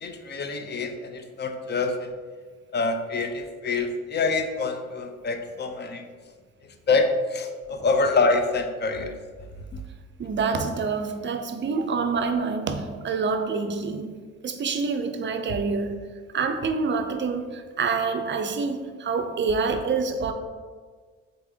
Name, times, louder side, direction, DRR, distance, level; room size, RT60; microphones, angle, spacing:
voice 1, 0.0-2.1 2.7-6.0 6.9-9.2 9.7-9.8, left 3 dB, 35° left, 0.5 m, -26 dB
voice 2, 10.2-16.0 16.3-20.3, right 4 dB, 40° right, 0.5 m, -27 dB
4.0 x 3.4 x 3.4 m
cardioid pair, 90°, 30 cm